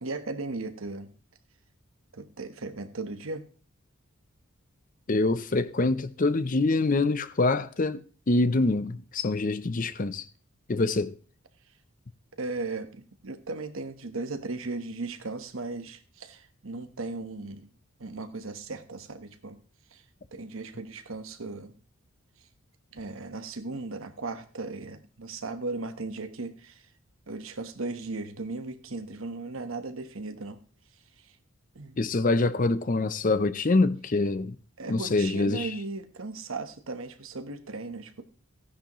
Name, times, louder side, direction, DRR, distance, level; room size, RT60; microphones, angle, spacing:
voice 1, 0.0-1.1 2.1-3.5 12.4-17.7 18.0-19.6 19.9-20.0 20.3-21.7 22.9-26.9 27.3-30.6 31.2-31.3 31.7-32.0 34.8-38.2, right 3 dB, 70° right, 1.1 m, -37 dB
voice 2, 5.1-8.0 8.3-10.2 10.7-11.1 32.0-34.6 34.9-35.7, left 2 dB, 40° left, 0.6 m, -25 dB
14.5 x 10.0 x 3.0 m
head